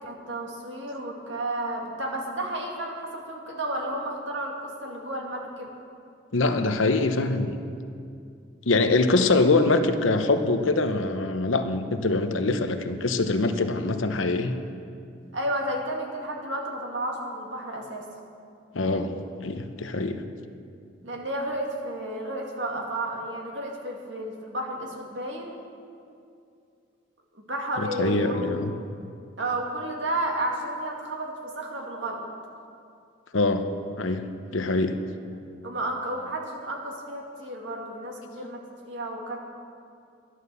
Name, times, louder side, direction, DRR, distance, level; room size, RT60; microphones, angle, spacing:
voice 1, 0.0-5.7 15.3-18.0 21.0-25.6 27.3-28.5 29.4-32.2 35.6-39.4, right 1 dB, 65° right, 0 dB, 2.1 m, -32 dB
voice 2, 6.3-7.6 8.7-14.5 18.7-19.1 19.4-20.2 27.8-28.7 33.3-33.7 34.0-34.2 34.5-35.0, left 3 dB, 85° left, 8 dB, 0.9 m, -24 dB
11.5 x 11.5 x 6.9 m, 2.5 s
head